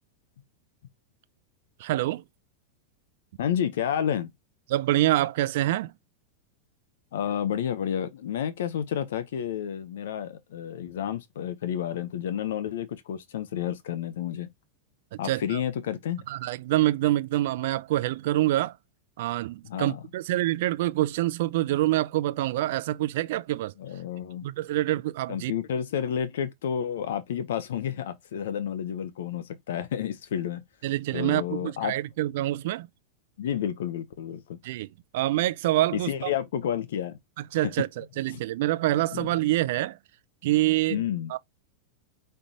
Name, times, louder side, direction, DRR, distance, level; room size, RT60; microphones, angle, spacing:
voice 1, 1.8-2.2 4.7-5.9 15.1-15.6 16.3-18.8 19.2-23.7 24.4-25.5 30.8-32.9 34.6-36.3 37.4-40.0 40.4-41.0 41.3-41.4, right 15 dB, 65° right, 0.4 m, -26 dB
voice 2, 3.4-4.3 7.1-14.5 15.2-16.2 19.6-20.0 23.8-24.5 25.3-30.6 31.1-31.9 33.4-34.6 35.9-37.2 37.6-37.7 38.3-38.4 39.1-39.3 40.9-41.3, left 9 dB, 80° left, 0.7 m, -30 dB
5.3 x 3.3 x 2.8 m
supercardioid pair, 135°, 0 cm